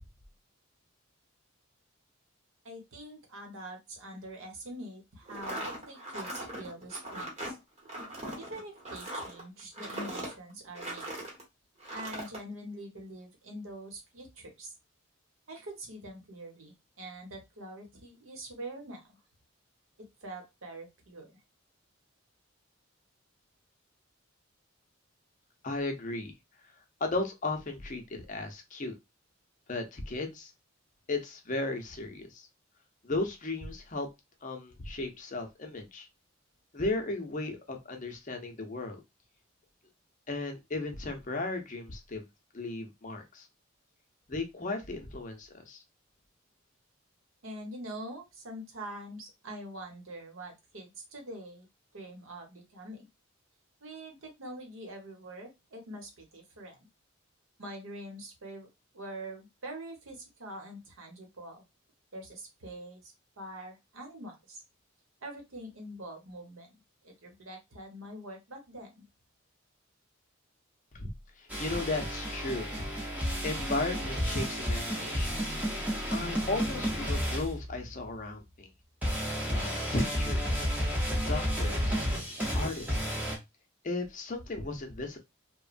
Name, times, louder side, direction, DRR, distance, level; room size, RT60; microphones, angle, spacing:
voice 1, 2.6-7.6 8.4-11.1 11.9-14.7 15.5-19.2 20.2-21.3 47.4-51.7 51.9-53.1 53.8-56.9 57.6-58.7 58.9-61.6 62.1-64.6 65.2-66.7 67.0-69.0, right 1 dB, 80° right, 2 dB, 1.0 m, -44 dB
sound 1, 5.3-11.4 11.8-12.4, right 1 dB, 35° right, 1.0 m, -39 dB
voice 2, 25.6-26.3 27.0-28.9 29.7-30.5 31.1-32.4 33.0-34.1 34.4-36.1 36.7-39.0 40.3-42.2 42.5-43.5 44.3-45.8 70.9-71.1 71.4-72.7 73.1-75.4 76.1-78.7 79.5-80.7 81.3-82.0 82.5-83.1 83.8-85.2, left 2 dB, 40° left, 5 dB, 0.6 m, -35 dB
sound 2, 71.5-78.2 79.0-83.4, equal, 10° right, 0.6 m, -32 dB
3.1 x 2.1 x 2.4 m, 0.22 s
head